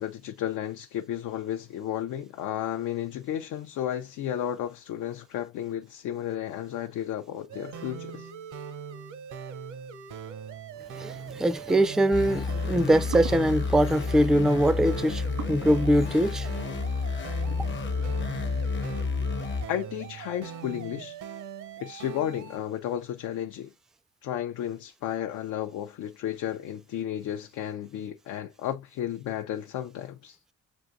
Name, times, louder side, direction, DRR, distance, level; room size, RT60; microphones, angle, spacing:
voice 1, 0.0-8.3 19.7-21.2 21.8-23.7 24.2-30.4, left 11 dB, 80° left, 0.5 m, -33 dB
sound 1, 7.5-22.6, right 7 dB, 70° right, 0.8 m, -41 dB
voice 2, 11.0-16.5, right 1 dB, ahead, 0.3 m, -23 dB
sound 2, 11.5-18.5, right 6 dB, 90° right, 1.5 m, -45 dB
sound 3, 12.1-19.6, left 4 dB, 40° left, 0.7 m, -30 dB
7.0 x 2.6 x 2.5 m
cardioid pair, 90°, 30 cm